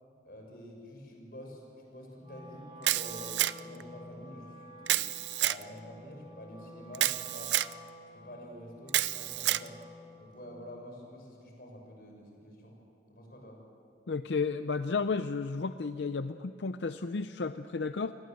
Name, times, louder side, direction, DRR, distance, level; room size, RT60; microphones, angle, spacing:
voice 1, 0.2-5.1 5.4-7.5 8.1-9.8 10.2-12.7 13.1-13.6, equal, 55° left, 1 dB, 6.4 m, -48 dB
Wind instrument woodwind instrument, 2.2-10.2, left 1 dB, 25° right, 7.7 m, -50 dB
Camera, 2.8-3.8 4.9-5.6 6.9-7.7 8.9-9.7, right 14 dB, 90° right, 0.5 m, -29 dB
voice 2, 14.1-18.1, left 4 dB, 90° left, 11 dB, 0.6 m, -32 dB
28.5 x 20.5 x 7.8 m, 2.6 s
head